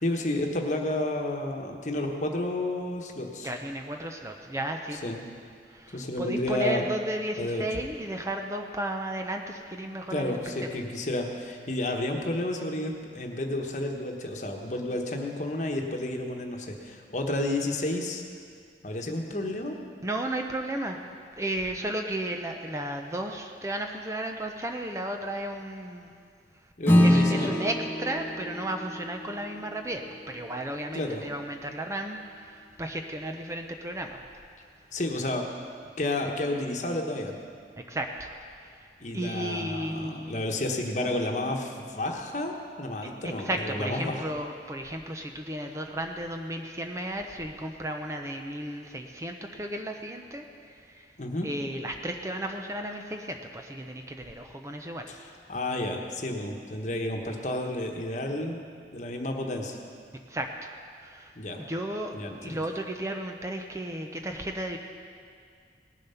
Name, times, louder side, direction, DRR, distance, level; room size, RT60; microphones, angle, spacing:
voice 1, 0.0-3.5 5.0-5.2 5.9-6.8 7.4-7.6 10.1-18.2 18.8-19.8 26.8-27.5 30.9-31.2 34.9-35.4 36.0-37.3 39.0-44.2 51.2-51.5 55.1-55.2 55.5-58.6 58.9-59.8 61.3-61.6 62.1-62.6, left 1 dB, 45° left, 2 dB, 1.2 m, -31 dB
voice 2, 3.4-5.1 5.7-10.4 20.0-21.0 21.4-26.1 27.0-34.2 34.9-35.0 37.8-38.9 39.1-40.4 43.0-51.1 51.4-55.1 60.3-60.7 61.0-64.8, right 1 dB, 15° right, 4 dB, 0.6 m, -34 dB
Acoustic guitar / Strum, 26.8-31.6, left 1 dB, 15° left, 1.2 m, -26 dB
18.5 x 7.2 x 5.7 m, 2.2 s
head